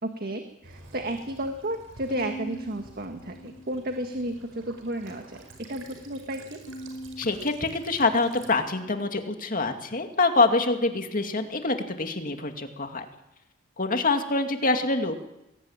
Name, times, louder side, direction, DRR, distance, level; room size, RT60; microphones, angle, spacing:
voice 1, 0.0-6.6, right 1 dB, 50° right, 5 dB, 1.7 m, -33 dB
Child speech kid speaking / Bird vocalization bird call bird song / Stream, 0.6-8.6, right 2 dB, 90° right, 5.3 m, -50 dB
Bowed string instrument, 2.1-4.5 4.9-5.7 6.7-9.2, right 1 dB, 85° left, 2.7 m, -44 dB
voice 2, 7.2-13.0 13.8-15.2, left 3 dB, 45° left, 5 dB, 2.4 m, -25 dB
21.5 x 18.0 x 8.9 m, 0.90 s
head